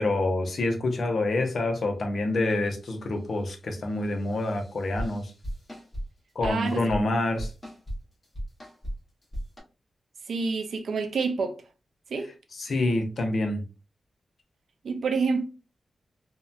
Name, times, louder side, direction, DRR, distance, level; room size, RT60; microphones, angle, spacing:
voice 1, 0.0-5.3 6.4-7.5 12.5-13.6, left 2 dB, 55° left, 0.6 m, -27 dB
sound 1, 4.2-6.0 6.4-7.0 7.4-8.0 8.2-8.9 9.2-9.6, equal, 15° left, 0.9 m, -35 dB
voice 2, 6.4-6.8 10.3-11.5 12.1-12.3 14.8-15.5, right 4 dB, 75° right, 0.4 m, -27 dB
2.7 x 2.1 x 2.3 m
wide cardioid pair, 170°, 0 cm